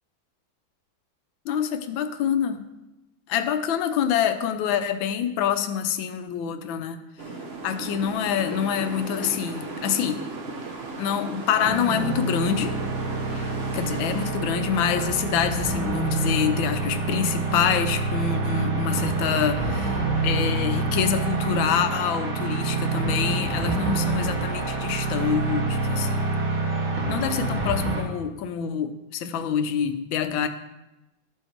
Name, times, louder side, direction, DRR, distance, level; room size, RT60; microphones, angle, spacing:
voice 1, 1.4-2.6 3.3-7.0 7.6-10.2 11.0-12.8 13.3-26.3 27.1-30.5, left 8 dB, 80° left, 9 dB, 1.4 m, -26 dB
sound 1, 7.2-14.3, right 3 dB, 50° right, 0.8 m, -36 dB
sound 2, 11.5-28.0, right 3 dB, 85° right, 2.2 m, -27 dB
12.5 x 4.6 x 4.5 m, 0.98 s
omnidirectional pair, 2.1 m